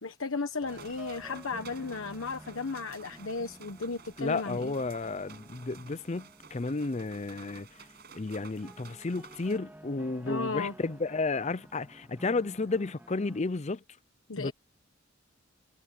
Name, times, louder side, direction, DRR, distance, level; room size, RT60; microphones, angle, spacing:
voice 1, 0.0-4.7 10.2-10.7 14.3-14.5, left 4 dB, 75° left, 1.3 m, -35 dB
sound 1, 0.6-13.4, right 1 dB, 10° right, 1.9 m, -52 dB
sound 2, 0.7-9.6, right 6 dB, 50° right, 7.5 m, -53 dB
voice 2, 4.2-7.7 8.1-13.8 14.4-14.5, left 3 dB, 35° left, 0.5 m, -32 dB
head